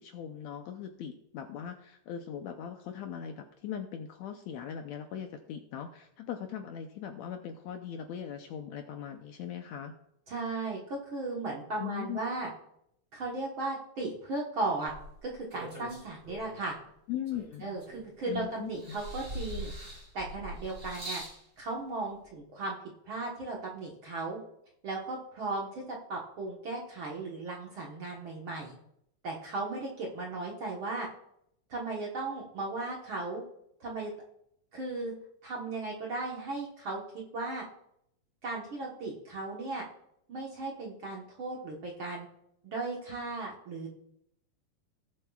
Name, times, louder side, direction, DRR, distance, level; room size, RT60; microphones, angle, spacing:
voice 1, 0.0-9.9 11.8-12.2 17.1-17.7 18.3-19.0, left 9 dB, 75° left, 5 dB, 1.7 m, -39 dB
voice 2, 10.3-12.5 13.1-14.9 15.2-16.7 17.6-19.7 20.1-21.2 21.6-22.7 23.0-24.4 24.8-25.8 26.1-28.7 29.2-31.1 31.7-33.4 33.8-34.1 34.7-35.1 35.4-37.0 37.3-37.6 38.4-39.8 40.3-42.3 42.6-43.9, right 3 dB, 55° right, -2 dB, 1.6 m, -36 dB
sound 1, 14.9-16.7 17.3-18.3 18.8-21.4 22.3-22.4, equal, 20° right, 3.1 m, -42 dB
18.0 x 7.4 x 2.3 m, 0.75 s
omnidirectional pair, 3.7 m